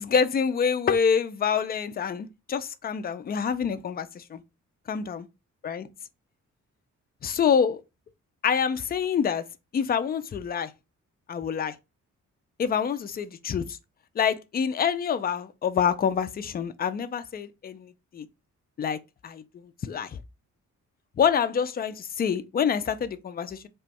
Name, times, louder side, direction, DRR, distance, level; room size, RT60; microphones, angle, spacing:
voice 1, 0.0-4.4 4.9-5.3 5.6-5.9 7.2-7.8 8.4-9.4 9.7-10.7 11.3-11.7 12.6-13.8 14.2-18.3 18.8-19.0 19.2-19.4 19.8-20.1 21.2-23.7, left 7 dB, 30° left, 0.4 m, -26 dB
3.0 x 2.3 x 4.2 m
cardioid pair, 110°, 30 cm